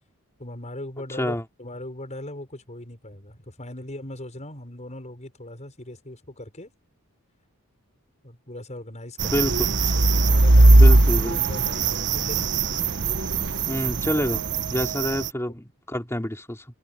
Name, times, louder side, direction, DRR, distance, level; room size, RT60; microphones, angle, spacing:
voice 1, 0.4-6.7 8.2-9.5 9.9-12.5, left 1 dB, 30° left, 6.5 m, -39 dB
sound 1, 9.2-15.3, right 2 dB, 55° right, 1.3 m, -19 dB
voice 2, 10.7-11.4 13.7-16.6, equal, 10° left, 3.4 m, -27 dB
head